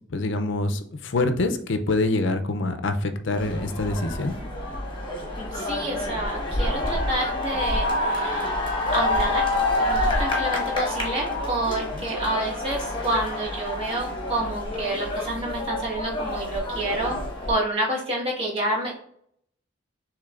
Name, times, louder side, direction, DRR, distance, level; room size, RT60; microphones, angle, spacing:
voice 1, 0.1-4.3 11.9-12.1, left 2 dB, 65° left, 8 dB, 0.5 m, -25 dB
sound 1, 3.3-17.5, left 2 dB, 25° left, 1.2 m, -27 dB
voice 2, 5.5-8.6 8.9-9.5 9.8-17.2 17.5-19.0, right 1 dB, 30° right, -4 dB, 1.5 m, -28 dB
6.5 x 3.2 x 2.5 m, 0.66 s
head